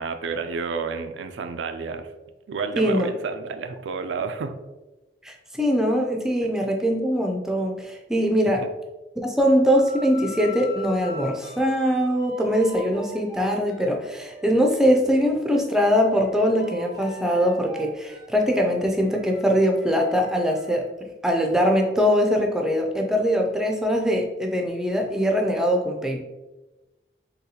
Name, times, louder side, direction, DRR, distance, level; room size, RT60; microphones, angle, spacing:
voice 1, 0.0-2.1 2.5-4.6, right 5 dB, 90° right, 7 dB, 0.4 m, -30 dB
voice 2, 2.8-3.1 5.2-8.7 9.2-20.9 21.2-26.2, equal, 5° right, 1 dB, 0.4 m, -22 dB
sound 1, 9.7-15.0 15.4-20.7, left 1 dB, 65° left, 1.2 m, -43 dB
3.9 x 3.0 x 2.8 m, 1.1 s
head